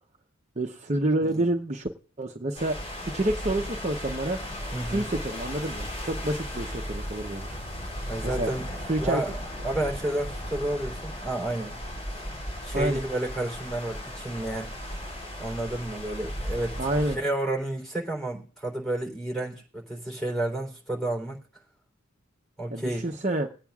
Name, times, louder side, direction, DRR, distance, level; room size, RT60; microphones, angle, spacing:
voice 1, 0.6-1.9 2.2-2.8 3.1-4.4 4.9-7.5 8.4-8.5 8.9-9.2 12.7-13.0 16.8-17.2 22.7-23.5, right 1 dB, 35° right, 3 dB, 0.8 m, -28 dB
sound 1, 2.5-17.2, equal, 30° left, 4.5 m, -36 dB
voice 2, 4.7-5.0 8.1-9.3 9.6-11.8 12.1-12.2 12.6-14.7 15.4-16.9 17.1-21.4 22.6-23.2, right 1 dB, ahead, -2 dB, 3.4 m, -31 dB
20.5 x 8.8 x 2.4 m, 0.40 s
head